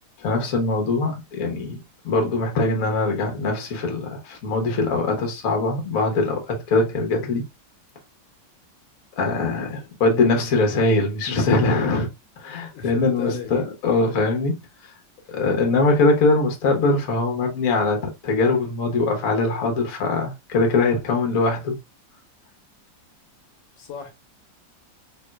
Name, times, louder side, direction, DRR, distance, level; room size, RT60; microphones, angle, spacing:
voice 1, 0.2-1.8 2.0-7.4 9.1-12.1 12.4-14.6 15.3-21.7, left 3 dB, 55° left, 1.2 m, -22 dB
voice 2, 12.7-13.5 15.2-15.3 23.8-24.1, left 6 dB, 85° left, 1.6 m, -34 dB
4.2 x 3.1 x 2.2 m
omnidirectional pair, 2.0 m